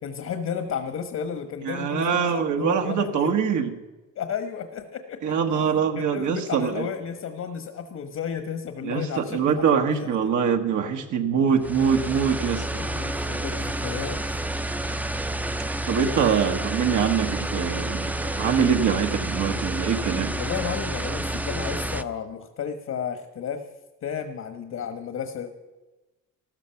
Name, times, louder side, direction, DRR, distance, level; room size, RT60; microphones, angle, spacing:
voice 1, 0.0-3.3 4.1-5.3 5.9-9.6 9.9-10.3 12.7-14.6 20.3-23.6 24.0-25.5, left 7 dB, 60° left, 8 dB, 1.4 m, -33 dB
voice 2, 1.6-3.7 5.2-6.9 8.8-12.7 15.9-20.3, right 7 dB, 75° right, 4 dB, 1.4 m, -24 dB
sound 1, 11.6-22.0, right 1 dB, 5° right, 0.6 m, -29 dB
14.0 x 13.5 x 5.8 m, 1.1 s
cardioid pair, 90°, 30 cm